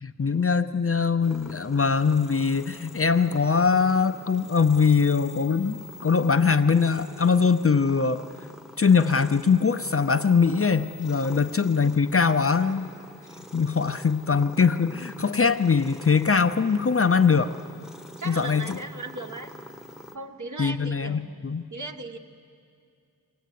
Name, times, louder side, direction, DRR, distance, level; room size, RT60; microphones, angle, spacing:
voice 1, 0.0-8.2 8.8-12.9 13.5-17.5 18.3-18.8 20.6-21.7, left 5 dB, 35° left, 10 dB, 0.6 m, -22 dB
Cat purring, 1.2-20.2, left 1 dB, ahead, 1.0 m, -45 dB
voice 2, 18.2-19.5 20.1-21.4 21.7-22.2, right 2 dB, 50° right, 5 dB, 1.3 m, -37 dB
22.5 x 17.0 x 9.3 m, 2.5 s
wide cardioid pair, 90°, 39 cm